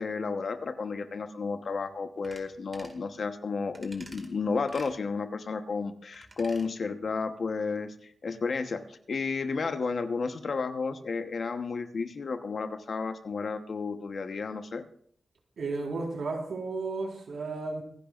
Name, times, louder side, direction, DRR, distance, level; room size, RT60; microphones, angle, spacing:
voice 1, 0.0-14.8, left 4 dB, 55° left, 8 dB, 1.0 m, -32 dB
sound 1, 2.2-2.4 2.7-3.0 3.7-4.3 4.7-4.9 6.1-6.7 7.0-7.1, right 2 dB, 30° right, 2.0 m, -49 dB
voice 2, 15.6-17.8, right 3 dB, 85° right, -1 dB, 4.2 m, -33 dB
26.5 x 10.5 x 2.5 m, 0.63 s
wide cardioid pair, 150°, 0 cm